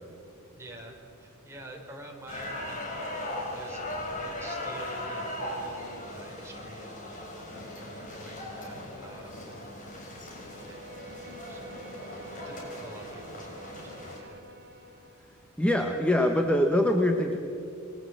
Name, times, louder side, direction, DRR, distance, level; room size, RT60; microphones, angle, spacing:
voice 1, 0.5-2.8 3.5-3.9 4.2-7.0 7.5-9.7 10.7-10.8 11.5-11.6 12.1-13.5 13.8-14.4, right 1 dB, 10° right, 0 dB, 4.2 m, -47 dB
sound 1, 2.3-14.2, left 1 dB, 35° left, 6.0 m, -38 dB
Bowed string instrument, 10.4-15.3, right 2 dB, 45° right, 2.8 m, -48 dB
voice 2, 15.6-17.4, left 1 dB, 5° left, 4 dB, 1.3 m, -23 dB
29.0 x 21.5 x 7.8 m, 2.7 s
head